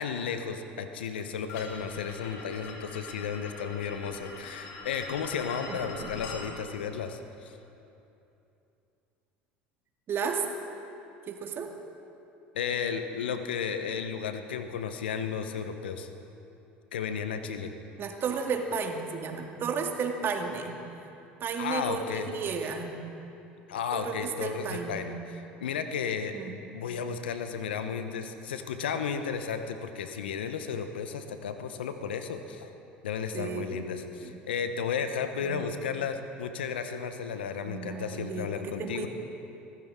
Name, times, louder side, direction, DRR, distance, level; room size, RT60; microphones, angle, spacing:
voice 1, 0.0-7.6 12.5-16.1 16.9-17.7 21.6-22.3 23.7-32.7 33.0-39.1, left 6 dB, 85° left, 8 dB, 0.9 m, -33 dB
sound 1, 1.5-6.4, left 4 dB, 65° left, 2.8 m, -43 dB
voice 2, 5.7-6.1 10.1-10.4 11.3-11.7 18.0-20.7 21.4-22.9 23.9-25.0 26.3-26.5 33.3-33.9 34.2-34.3 35.4-35.6 37.6-39.1, right 5 dB, 45° right, 3 dB, 2.0 m, -33 dB
24.5 x 15.0 x 3.7 m, 2.8 s
hypercardioid pair, 75°, 5 cm